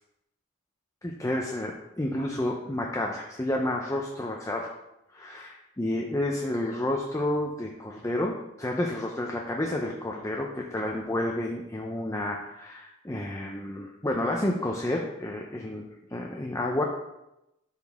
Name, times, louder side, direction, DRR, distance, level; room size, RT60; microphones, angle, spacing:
voice 1, 1.0-4.6 5.1-16.8, left 1 dB, 15° left, 0 dB, 0.6 m, -30 dB
12.5 x 4.1 x 3.6 m, 0.90 s
head